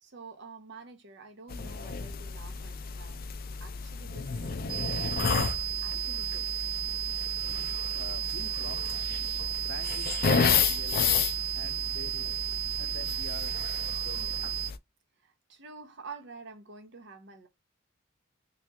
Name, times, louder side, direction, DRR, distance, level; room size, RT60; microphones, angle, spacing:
voice 1, 0.0-3.2 3.6-4.3 4.6-6.5 15.2-17.5, right 4 dB, 60° right, 0.8 m, -48 dB
sound 1, 1.5-14.8, left 6 dB, 45° left, 0.4 m, -32 dB
sound 2, 4.7-14.7, right 14 dB, 25° right, 1.0 m, -33 dB
voice 2, 7.9-9.1 9.4-12.5 12.8-13.6 14.0-14.3, left 4 dB, 80° left, 0.7 m, -46 dB
3.2 x 2.9 x 3.5 m
head